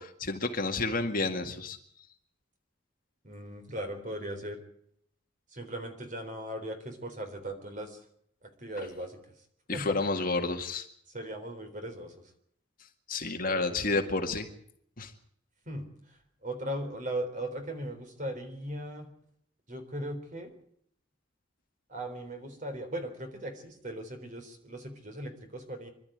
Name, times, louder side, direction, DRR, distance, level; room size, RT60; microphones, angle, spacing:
voice 1, 0.0-1.8 9.7-10.9 13.1-14.5 15.0-15.1, left 3 dB, 45° left, 4 dB, 2.0 m, -30 dB
voice 2, 3.2-4.6 5.5-8.0 8.6-9.2 9.7-10.0 11.1-12.1 13.4-13.8 15.7-15.9 16.4-19.1 19.7-20.5 21.9-25.9, right 1 dB, 40° right, 6 dB, 3.9 m, -38 dB
26.0 x 12.5 x 9.2 m, 0.69 s
head